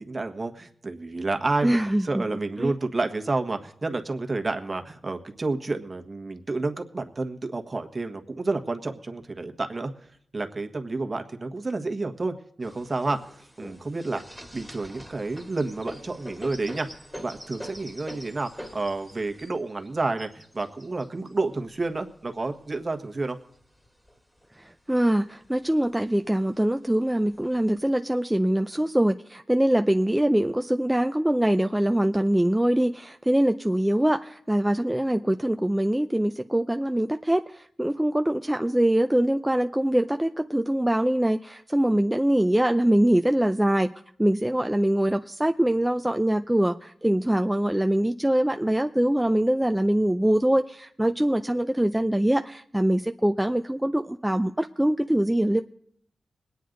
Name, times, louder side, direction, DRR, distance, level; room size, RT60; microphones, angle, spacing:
voice 1, 0.0-9.9 10.3-14.2 14.5-16.9 17.1-23.4, right 3 dB, 40° right, 5 dB, 1.4 m, -30 dB
voice 2, 1.6-2.2 2.6-2.7 24.6-43.9 44.2-55.6, right 1 dB, 10° right, 6 dB, 0.5 m, -23 dB
sound 1, 12.6-22.9 23.5-24.5 24.9-25.0 25.2-25.9 26.7-26.8 27.4-27.9, equal, 10° left, 2.0 m, -44 dB
21.0 x 9.4 x 3.9 m, 0.64 s
cardioid pair, 60°, 0 cm